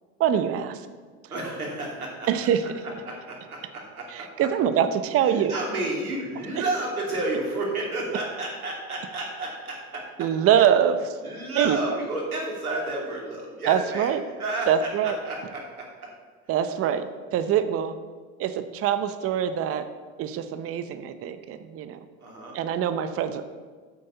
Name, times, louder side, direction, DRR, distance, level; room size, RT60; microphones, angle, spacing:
voice 1, 0.2-0.8 2.3-2.6 4.1-5.5 10.2-11.1 11.5-11.8 13.7-14.2 14.7-15.2 16.5-17.0 17.3-18.0 18.4-19.8 20.2-22.0 22.5-23.4, right 9 dB, 30° right, 10 dB, 0.7 m, -24 dB
voice 2, 1.3-2.3 2.8-4.5 5.2-10.3 11.2-14.1 14.4-15.9 22.2-22.6, right 2 dB, 90° right, -2 dB, 2.8 m, -31 dB
8.7 x 6.3 x 6.8 m, 1.5 s
hypercardioid pair, 85°, 43 cm